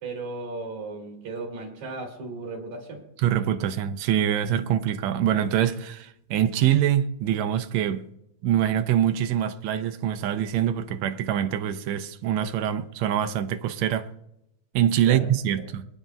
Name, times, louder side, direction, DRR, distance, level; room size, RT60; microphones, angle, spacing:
voice 1, 0.0-3.0 15.1-15.3 15.6-15.7, right 3 dB, 65° right, 3.9 m, -35 dB
voice 2, 3.2-8.1 8.4-14.1 14.7-15.9, right 10 dB, 80° right, 1.6 m, -24 dB
28.5 x 9.9 x 2.3 m
omnidirectional pair, 3.8 m